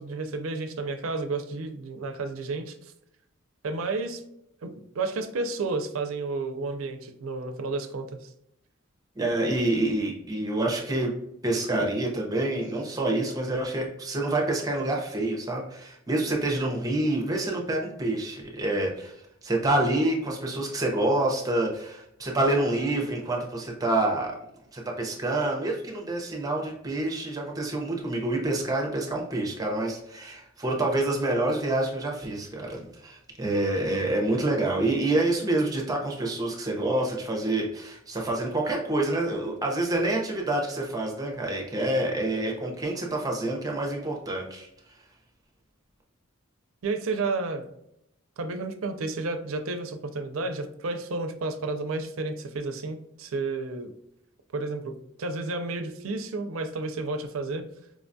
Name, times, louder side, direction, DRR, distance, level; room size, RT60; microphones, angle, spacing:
voice 1, 0.0-2.7 3.6-4.2 4.6-8.3 46.8-47.6 48.4-53.9 54.5-57.7, right 3 dB, 65° right, 7 dB, 0.5 m, -31 dB
voice 2, 9.2-11.1 11.4-19.1 19.4-24.4 24.7-44.7, right 2 dB, 15° right, 0 dB, 0.7 m, -27 dB
4.6 x 2.3 x 2.6 m, 0.78 s
head